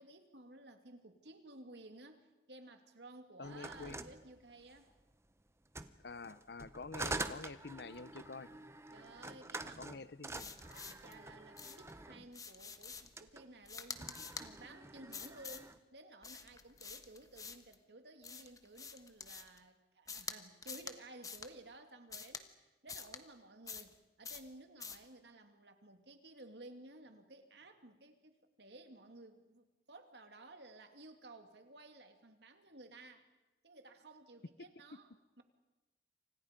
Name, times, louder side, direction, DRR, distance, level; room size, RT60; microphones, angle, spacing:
voice 1, 0.0-4.9 8.9-9.9 10.6-22.5 22.8-33.2 33.6-35.4, right 2 dB, 70° right, 6 dB, 2.6 m, -56 dB
voice 2, 3.4-4.0 6.0-8.5 9.8-10.5, left 4 dB, 65° left, 16 dB, 0.8 m, -48 dB
sound 1, 3.4-5.0 5.7-12.3 13.0-13.5 13.8-15.8, right 2 dB, 15° right, 1.0 m, -46 dB
sound 2, 10.3-11.1 11.6-11.9 12.3-13.2 13.6-14.5 15.1-15.7 16.2-17.7 18.2-19.6 20.1-20.4 20.6-21.0 21.2-21.5 22.1-22.4 22.9-23.2 23.7-24.0 24.2-24.5 24.8-25.1, left 5 dB, 20° left, 1.2 m, -47 dB
29.0 x 26.0 x 5.3 m, 1.1 s
head